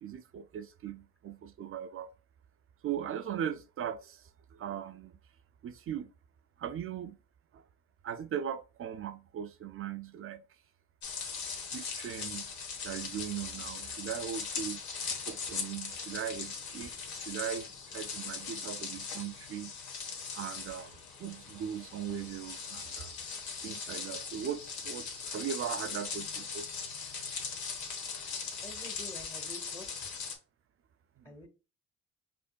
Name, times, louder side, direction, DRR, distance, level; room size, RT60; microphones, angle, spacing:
voice 1, 0.0-2.1 2.8-4.2 4.6-5.1 5.6-6.1 6.6-7.2 8.0-10.4 11.7-12.5 12.8-14.8 15.3-16.9 17.3-17.7 17.9-19.7 20.3-20.9 21.2-23.1 23.6-26.7, right 9 dB, 45° right, 0.4 m, -39 dB
sound 1, 11.0-30.4, left 5 dB, 70° left, 1.2 m, -40 dB
voice 2, 28.6-29.9 31.2-31.5, left 1 dB, 10° left, 0.8 m, -48 dB
5.1 x 2.6 x 2.2 m
cardioid pair, 90°, 30 cm